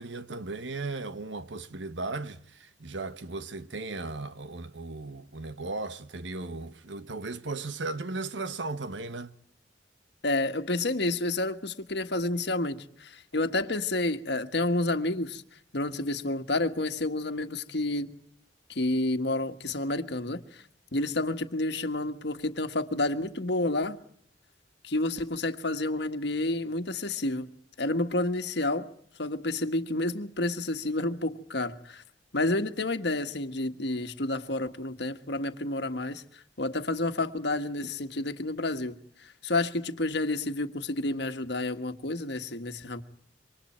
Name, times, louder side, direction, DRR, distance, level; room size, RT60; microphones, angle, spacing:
voice 1, 0.0-9.4, right 3 dB, 90° right, 1.2 m, -36 dB
voice 2, 10.2-15.4 15.7-18.1 18.7-20.6 20.9-24.0 24.8-27.5 27.8-28.9 29.2-32.0 32.3-43.0, left 2 dB, 65° left, 1.5 m, -30 dB
27.5 x 25.0 x 4.4 m
head